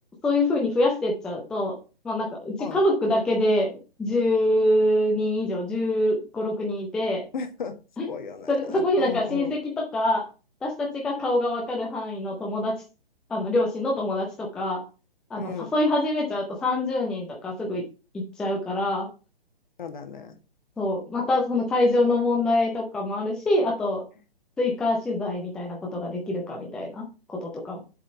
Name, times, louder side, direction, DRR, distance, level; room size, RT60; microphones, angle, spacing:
voice 1, 0.2-1.8 2.0-3.7 4.0-7.2 8.0-8.1 8.5-10.2 10.6-12.8 13.3-14.8 15.3-17.8 18.1-19.1 20.8-24.0 24.6-27.0 27.3-27.8, left 1 dB, ahead, -1 dB, 0.5 m, -25 dB
voice 2, 7.3-7.8 8.1-9.6 15.3-15.7 19.8-20.4, left 5 dB, 50° left, 8 dB, 1.5 m, -35 dB
7.5 x 3.9 x 5.6 m, 0.32 s
figure-of-eight pair, 130°, 30 cm